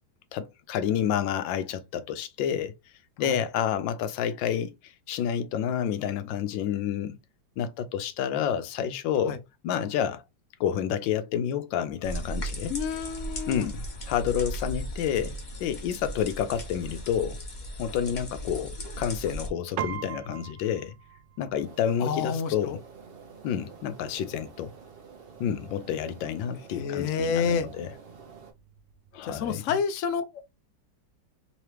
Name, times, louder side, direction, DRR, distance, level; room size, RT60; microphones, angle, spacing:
voice 1, 0.3-2.7 3.2-4.7 5.1-7.2 7.6-9.4 9.6-10.2 10.6-12.7 13.5-17.4 17.8-20.9 21.4-22.8 23.4-24.7 25.4-27.9 29.1-29.6, left 9 dB, 85° left, 1.3 m, -29 dB
sound 1, 12.0-19.5, equal, 30° left, 0.9 m, -36 dB
voice 2, 12.7-13.7 22.0-22.8 26.7-27.7 29.3-30.2, left 6 dB, 65° left, 0.7 m, -29 dB
Piano, 19.8-29.4, right 10 dB, 75° right, 1.2 m, -44 dB
sound 2, 21.6-28.5, right 6 dB, 50° right, 0.7 m, -49 dB
3.7 x 3.0 x 3.2 m
omnidirectional pair, 2.0 m